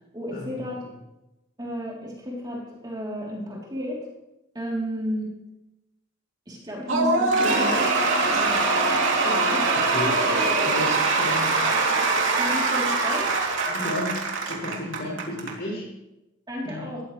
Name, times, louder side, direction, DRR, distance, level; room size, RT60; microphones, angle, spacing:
voice 1, 0.1-0.8 1.6-4.1 4.5-5.4 6.5-7.9 8.3-9.0 9.2-9.7 11.7-12.1 12.4-13.4 16.5-17.0, equal, 20° right, -3 dB, 3.5 m, -33 dB
Cheering / Applause / Crowd, 6.9-15.5, right 3 dB, 70° right, 3.0 m, -23 dB
voice 2, 9.7-10.2 10.6-11.7 13.7-15.9 16.6-16.9, left 1 dB, 50° left, -2 dB, 7.1 m, -33 dB
20.0 x 14.5 x 3.3 m, 0.95 s
head